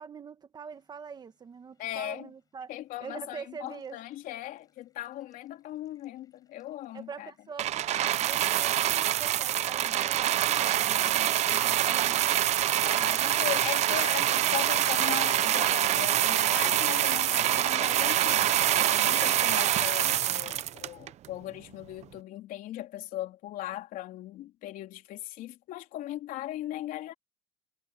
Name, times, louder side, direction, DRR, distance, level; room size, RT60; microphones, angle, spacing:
voice 1, 0.0-2.7 3.0-4.0 6.9-12.3, right 6 dB, 25° right, 1.4 m, -44 dB
sound 1, 0.7-1.2 1.7-1.9 2.8-3.0 3.7-15.7, left 5 dB, 25° left, 5.8 m, -60 dB
voice 2, 1.8-2.3 2.7-7.3 12.8-27.1, left 14 dB, 65° left, 3.5 m, -38 dB
sound 2, 7.6-21.3 22.0-22.1, right 12 dB, 45° right, 0.7 m, -25 dB
cardioid pair, 145°, 15 cm